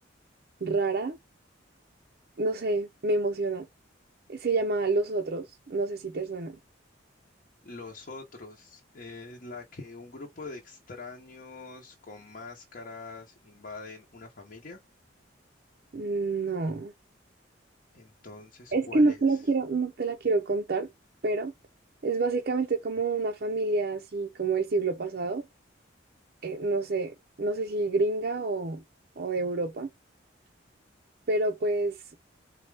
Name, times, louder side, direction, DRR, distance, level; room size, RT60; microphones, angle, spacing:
voice 1, 0.6-1.2 2.4-3.7 4.3-6.6 15.9-16.9 18.7-20.9 21.2-21.5 22.0-25.4 26.4-28.8 29.2-29.9 31.3-31.9, right 3 dB, 50° right, 0.5 m, -28 dB
voice 2, 7.6-14.8 17.9-19.4, left 3 dB, 45° left, 0.8 m, -44 dB
4.1 x 2.3 x 3.3 m
head